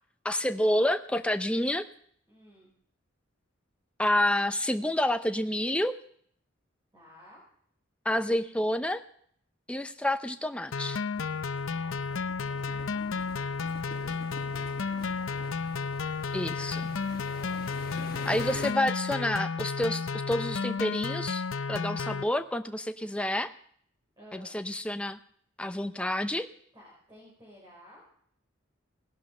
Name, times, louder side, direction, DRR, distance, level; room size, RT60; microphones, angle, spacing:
voice 1, 0.2-1.9 4.0-6.0 8.0-9.0 9.7-11.0 16.3-16.9 18.2-21.4 21.7-23.5 24.3-25.2 25.6-26.5, left 1 dB, 5° left, 8 dB, 0.6 m, -29 dB
voice 2, 2.3-2.7 6.9-7.4 11.7-13.1 13.8-15.8 17.3-17.6 24.2-24.6 26.7-28.0, equal, 20° right, -5 dB, 5.2 m, -54 dB
sound 1, 10.7-22.2, left 5 dB, 85° left, 0.6 m, -32 dB
sound 2, 11.1-18.7, left 2 dB, 50° left, 1.2 m, -45 dB
18.0 x 11.5 x 5.4 m, 0.63 s
head